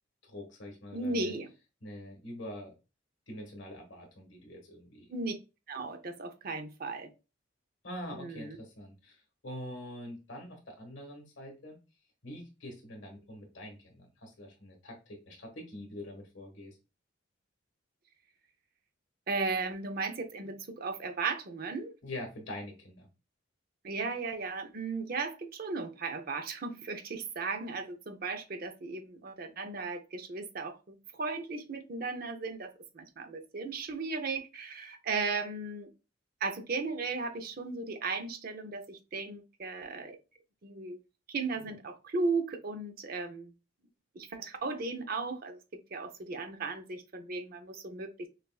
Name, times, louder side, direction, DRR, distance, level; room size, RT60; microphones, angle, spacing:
voice 1, 0.2-1.3 1.8-2.7 3.3-5.1 7.8-11.8 12.2-16.8 22.0-23.1, left 1 dB, 75° left, 1.5 m, -44 dB
voice 2, 0.9-1.5 5.1-5.3 5.7-7.1 8.1-8.6 19.3-21.9 23.8-35.9 36.4-40.2 40.6-41.0 41.3-43.5 44.1-45.6 45.9-48.3, right 4 dB, 50° right, 0.6 m, -36 dB
6.3 x 2.4 x 2.3 m
head